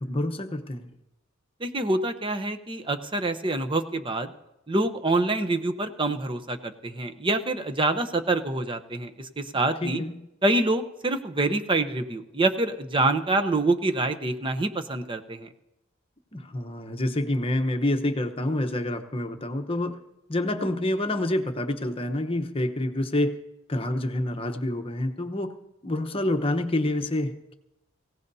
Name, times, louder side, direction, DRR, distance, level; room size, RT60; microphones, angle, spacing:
voice 1, 0.0-0.9 9.8-10.3 16.3-20.0 20.3-23.4 23.7-25.5 25.8-27.5, left 1 dB, 25° left, 6 dB, 0.9 m, -27 dB
voice 2, 1.6-4.3 4.7-10.0 10.4-15.5, right 2 dB, 25° right, 8 dB, 0.8 m, -26 dB
24.0 x 16.5 x 2.7 m, 0.90 s
head